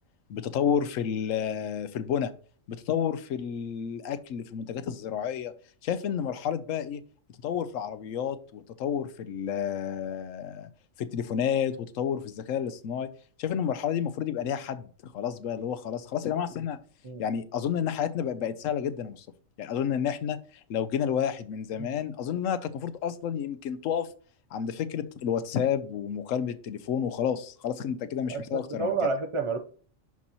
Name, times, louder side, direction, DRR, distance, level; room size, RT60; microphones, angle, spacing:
voice 1, 0.3-2.3 2.7-5.5 5.8-7.0 7.4-10.7 11.0-13.1 13.4-16.8 17.2-19.3 19.6-20.4 20.7-24.1 24.5-29.0, left 8 dB, 80° left, 1.0 m, -30 dB
voice 2, 28.3-29.6, right 4 dB, 30° right, 0.6 m, -30 dB
11.0 x 4.1 x 2.9 m
omnidirectional pair, 1.4 m